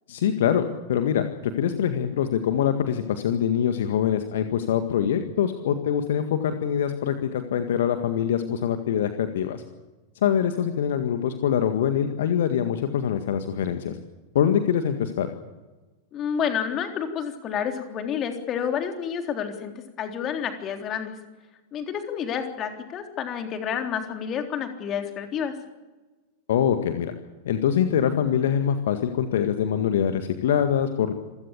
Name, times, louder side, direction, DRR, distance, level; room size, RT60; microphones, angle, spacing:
voice 1, 0.1-9.6 10.2-14.0 14.4-15.3 26.5-27.1 27.5-31.1, left 9 dB, 60° left, 8 dB, 1.8 m, -24 dB
voice 2, 16.1-19.7 20.0-21.1 21.7-25.5, left 8 dB, 30° left, 5 dB, 3.6 m, -29 dB
27.0 x 16.5 x 8.5 m, 1.2 s
figure-of-eight pair, 90°, 0 cm